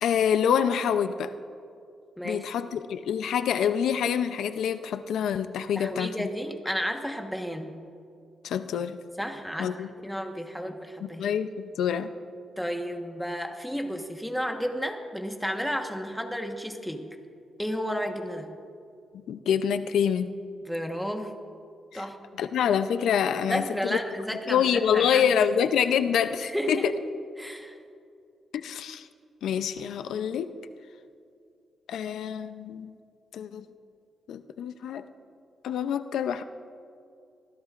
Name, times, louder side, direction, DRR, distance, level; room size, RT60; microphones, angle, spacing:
voice 1, 0.0-1.3 2.2-6.3 8.4-9.0 9.6-9.9 11.0-12.1 19.1-20.3 21.9-22.0 22.4-24.0 24.5-26.9 28.5-29.1 29.4-30.5 31.9-32.9 33.3-33.7 34.3-35.0 35.6-36.4, left 8 dB, 90° left, 10 dB, 0.5 m, -26 dB
voice 2, 5.8-7.7 9.2-9.8 10.0-11.3 12.6-17.1 17.6-18.5 20.6-21.3 21.9-22.2 23.5-25.2 26.4-26.9 27.4-27.8, equal, ahead, 3 dB, 1.3 m, -32 dB
26.0 x 16.0 x 2.5 m, 2.4 s
cardioid pair, 135°, 0 cm